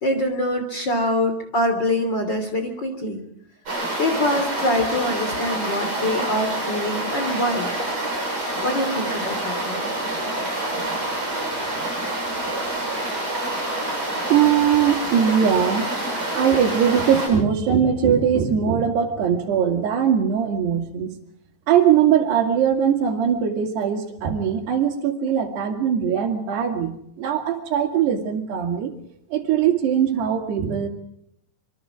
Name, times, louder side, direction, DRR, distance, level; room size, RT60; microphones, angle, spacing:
voice 1, 0.0-3.2 4.0-7.7 8.6-9.9, left 1 dB, 30° left, 6 dB, 3.0 m, -24 dB
sound 1, 3.7-17.3, right 1 dB, 40° right, 8.9 m, -27 dB
voice 2, 14.3-15.9 16.4-21.1 21.7-28.9 29.3-30.9, right 8 dB, 80° right, 4 dB, 4.5 m, -20 dB
26.5 x 24.0 x 4.9 m, 0.73 s
omnidirectional pair, 4.7 m